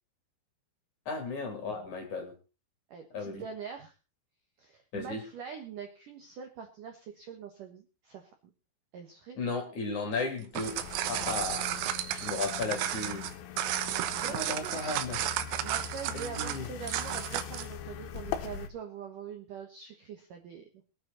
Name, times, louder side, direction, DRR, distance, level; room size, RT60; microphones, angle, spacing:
voice 1, 1.1-2.3 3.1-3.4 4.9-5.2 9.4-10.8 11.1-11.7 12.1-13.3 14.1-15.2 16.1-16.7, left 4 dB, 40° left, 4 dB, 3.9 m, -35 dB
voice 2, 2.9-4.0 4.6-8.3 8.9-9.4 14.1-15.0 15.6-20.7, right 7 dB, 65° right, 4 dB, 2.2 m, -43 dB
sound 1, 10.4-17.7, right 12 dB, 80° right, 3.6 m, -33 dB
sound 2, 10.6-18.7, left 9 dB, 75° left, 3.4 m, -42 dB
22.5 x 9.1 x 4.1 m, 0.33 s
omnidirectional pair, 5.8 m